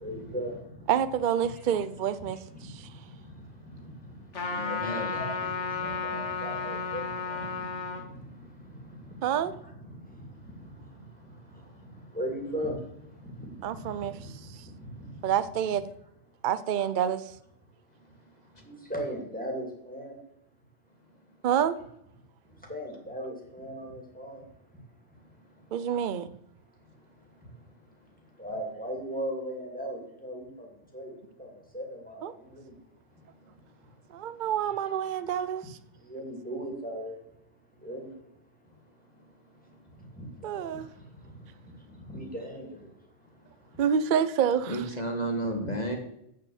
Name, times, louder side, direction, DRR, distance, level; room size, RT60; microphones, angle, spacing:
voice 1, 0.0-0.6 4.6-5.3 5.8-7.4 12.1-12.7 18.9-20.1 22.7-24.4 28.4-30.5 30.9-31.1 31.4-31.5 31.7-32.3 32.6-32.7 36.1-37.2 37.8-38.1 42.1-42.7, equal, 5° left, 2.6 m, -36 dB
voice 2, 0.9-2.9 9.2-9.5 13.6-14.1 14.4-14.7 15.2-15.8 16.4-17.2 21.4-21.8 25.7-26.3 32.2-32.3 34.1-35.8 40.4-40.9 43.8-44.8, right 9 dB, 50° right, 0.6 m, -28 dB
Trumpet, 4.3-8.0, left 5 dB, 70° left, 1.7 m, -33 dB
voice 3, 4.5-5.2 44.7-46.0, right 1 dB, 35° left, 2.0 m, -32 dB
8.2 x 7.6 x 7.2 m
omnidirectional pair, 1.3 m